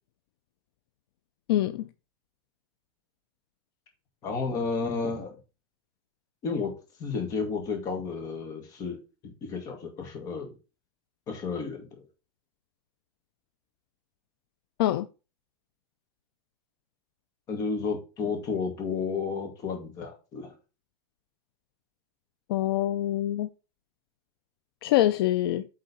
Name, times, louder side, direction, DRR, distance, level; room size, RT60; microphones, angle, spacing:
voice 1, 1.5-1.9 14.8-15.1 22.5-23.5 24.8-25.7, left 13 dB, 65° left, 0.5 m, -25 dB
voice 2, 4.2-5.3 6.4-6.7 7.0-9.0 9.2-10.5 11.3-12.1 17.5-20.5, left 4 dB, 25° left, 1.8 m, -32 dB
8.2 x 3.7 x 4.3 m
supercardioid pair, 170°, 13 cm